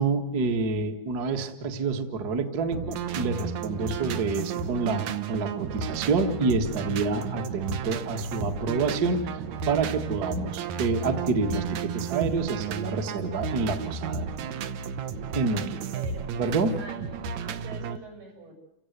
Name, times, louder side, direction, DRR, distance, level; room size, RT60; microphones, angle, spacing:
voice 1, 0.0-14.4 15.3-15.8 16.4-16.8, right 4 dB, 40° right, 5 dB, 1.4 m, -28 dB
sound 1, 2.7-18.0, right 6 dB, 65° right, 1.9 m, -33 dB
voice 2, 15.7-16.3 16.8-18.6, right 4 dB, 85° right, -1 dB, 8.4 m, -44 dB
29.5 x 16.5 x 8.2 m, 0.85 s
omnidirectional pair, 4.4 m